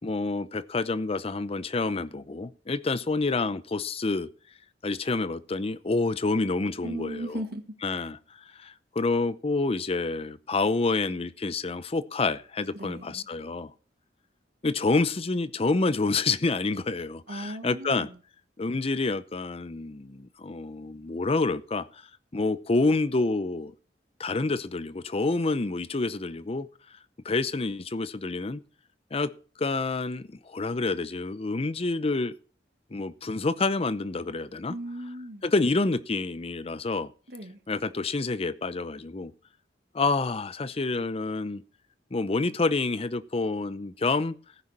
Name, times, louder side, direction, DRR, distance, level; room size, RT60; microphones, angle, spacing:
voice 1, 0.0-4.3 4.8-7.4 7.8-8.2 8.6-13.7 14.6-18.1 18.6-22.0 22.3-23.7 24.2-26.7 27.2-28.6 29.1-29.3 29.6-32.3 32.9-34.7 35.4-37.1 37.7-39.3 39.9-41.6 42.1-44.4, left 3 dB, 35° left, 0.6 m, -28 dB
voice 2, 6.8-8.1 12.7-13.3 17.3-18.2 34.7-35.4 37.3-37.6, right 1 dB, 60° right, 1.7 m, -37 dB
15.0 x 9.7 x 4.2 m
head